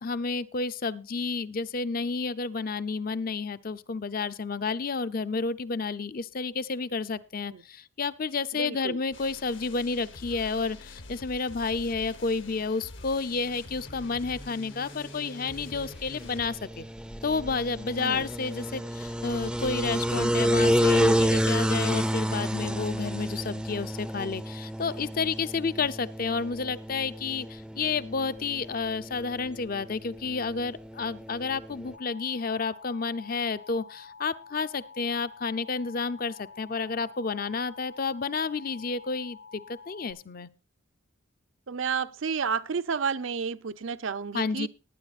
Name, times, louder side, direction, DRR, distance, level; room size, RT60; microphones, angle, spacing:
voice 1, 0.0-16.9 17.2-40.5 44.3-44.7, left 4 dB, 45° left, 0.6 m, -31 dB
voice 2, 8.5-9.0 18.0-18.3 41.7-44.7, right 6 dB, 70° right, 0.6 m, -31 dB
sound 1, 9.1-16.5, left 2 dB, 65° left, 1.1 m, -46 dB
sound 2, 13.9-32.0, equal, 5° right, 0.5 m, -30 dB
Alarm, 31.9-40.1, left 5 dB, 80° left, 3.0 m, -49 dB
19.5 x 9.8 x 2.5 m
head